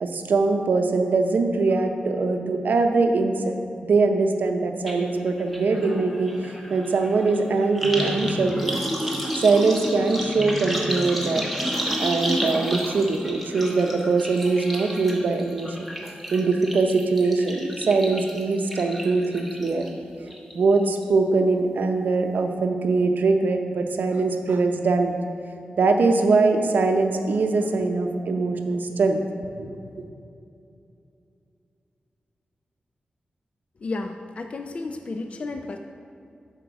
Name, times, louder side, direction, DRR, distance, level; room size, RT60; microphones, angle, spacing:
voice 1, 0.0-11.5 12.0-15.8 16.0-19.9 20.5-25.2 25.8-29.2 29.5-29.7, right 3 dB, 75° right, 5 dB, 0.6 m, -22 dB
sound 1, 4.9-5.0 5.3-19.9 20.3-20.8 21.0-21.1, equal, ahead, 0.9 m, -31 dB
voice 2, 33.8-35.8, left 3 dB, 40° left, 6 dB, 0.3 m, -32 dB
7.9 x 5.9 x 4.6 m, 2.6 s
wide cardioid pair, 150°, 3 cm